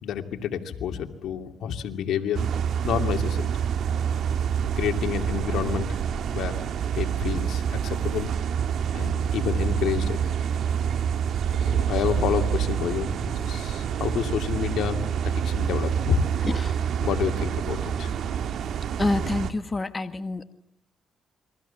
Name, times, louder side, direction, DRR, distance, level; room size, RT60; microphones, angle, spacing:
voice 1, 0.0-2.4 2.8-3.6 4.8-6.0 6.3-6.6 6.9-8.3 8.9-10.3 11.6-16.2 17.0-18.1, left 8 dB, 75° left, 6 dB, 2.7 m, -29 dB
sound 1, 2.3-19.5, right 8 dB, 70° right, 1.7 m, -27 dB
voice 2, 16.4-16.8 19.0-20.4, left 2 dB, 25° left, 9 dB, 1.5 m, -27 dB
29.0 x 23.0 x 7.3 m, 0.73 s
cardioid pair, 90°, 0 cm